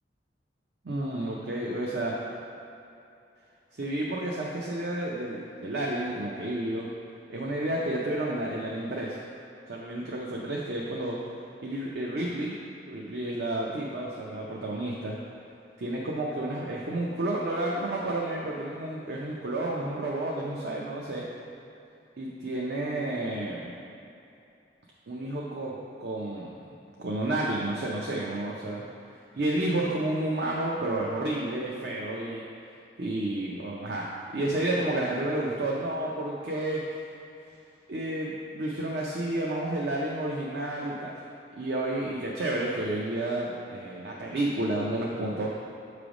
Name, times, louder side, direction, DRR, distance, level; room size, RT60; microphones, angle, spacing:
voice 1, 0.8-2.2 3.7-6.9 7.3-9.2 9.7-11.2 11.6-12.5 12.9-15.1 15.8-21.3 22.2-23.8 25.1-26.5 27.0-28.8 29.3-32.4 33.0-36.8 37.9-41.1 41.6-45.5, right 1 dB, 65° right, -3 dB, 0.6 m, -31 dB
7.0 x 3.3 x 5.0 m, 2.7 s
head